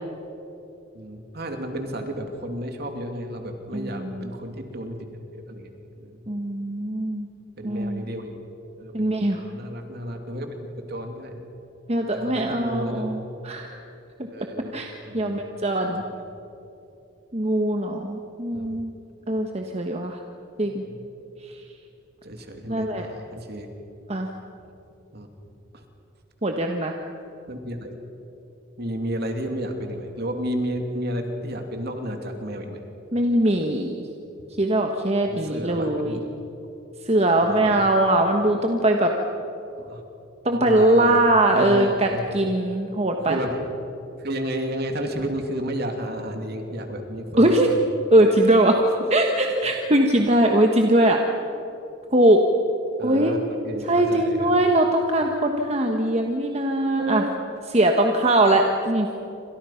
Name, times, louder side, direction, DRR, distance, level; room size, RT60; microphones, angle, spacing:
voice 1, 0.9-5.0 5.3-6.3 7.6-8.4 8.8-11.4 12.1-13.1 14.3-14.8 15.1-15.4 16.1-16.2 18.5-18.8 20.9-21.0 22.2-23.7 25.1-25.3 25.7-25.8 27.5-27.9 28.8-32.8 35.2-36.2 37.4-37.9 39.8-40.0 40.5-41.2 41.5-42.2 43.3-43.6 44.2-47.8 53.0-54.6 57.0-57.4 58.5-58.6, equal, 55° right, 4 dB, 2.8 m, -32 dB
voice 2, 3.7-4.2 6.3-7.3 7.6-8.0 8.9-9.4 11.9-13.2 13.4-13.7 14.7-16.0 17.3-18.9 19.3-20.2 20.6-20.8 22.7-23.1 24.1-24.3 26.4-26.9 33.1-34.1 34.6-36.2 37.0-39.1 40.4-43.4 47.4-47.7 48.1-48.8 49.1-51.2 52.1-52.4 53.0-53.3 53.9-57.2 57.7-59.1, right 1 dB, 30° right, 3 dB, 1.3 m, -21 dB
29.0 x 26.0 x 5.9 m, 2.9 s
head